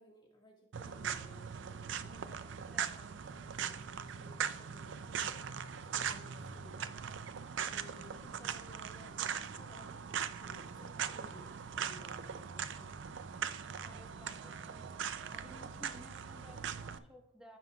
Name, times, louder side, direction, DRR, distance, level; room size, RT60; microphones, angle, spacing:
voice 1, 0.0-2.9 3.1-9.1 9.5-12.9, left 1 dB, 20° left, -2 dB, 1.7 m, -59 dB
sound 1, 0.7-17.0, right 7 dB, 60° right, 0.4 m, -40 dB
voice 2, 2.7-3.1 13.8-14.9 15.3-17.6, equal, 5° right, 0 dB, 1.3 m, -56 dB
15.0 x 5.5 x 2.3 m, 0.87 s
head